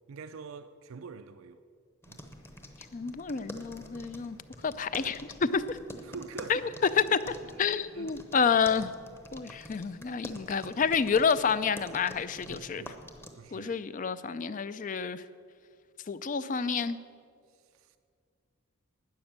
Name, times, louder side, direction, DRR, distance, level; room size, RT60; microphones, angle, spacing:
voice 1, 0.1-1.6 2.1-2.2 6.0-6.7 7.5-8.2 12.5-13.0 13.3-13.8 17.5-18.0, right 5 dB, 70° right, 0.4 m, -46 dB
sound 1, 2.0-13.3, left 1 dB, 10° left, 0.9 m, -48 dB
voice 2, 2.9-4.4 4.6-5.8 6.5-6.6 6.9-8.9 9.3-12.8 13.5-15.2 16.1-17.0, left 6 dB, 35° left, 0.4 m, -29 dB
12.0 x 9.7 x 7.4 m
head